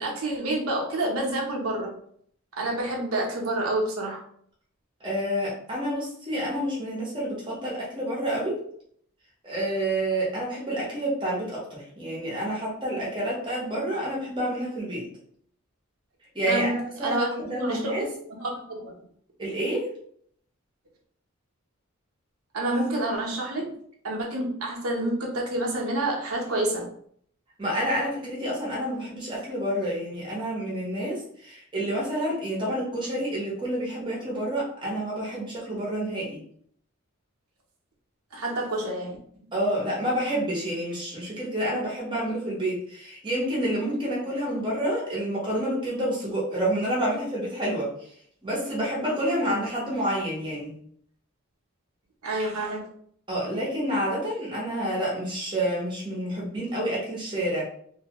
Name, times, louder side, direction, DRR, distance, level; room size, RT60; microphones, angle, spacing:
voice 1, 0.0-1.9 2.6-4.2 16.5-18.0 18.4-18.9 22.5-23.7 24.0-26.8 38.3-39.5 49.4-49.5 52.2-52.9, right 1 dB, 85° right, -1 dB, 0.8 m, -28 dB
voice 2, 5.0-8.6 9.4-15.1 16.3-18.0 19.4-19.9 27.6-36.4 39.5-47.9 48.4-50.7 53.3-57.6, right 1 dB, 20° right, -5 dB, 0.9 m, -28 dB
2.7 x 2.3 x 2.9 m, 0.64 s
head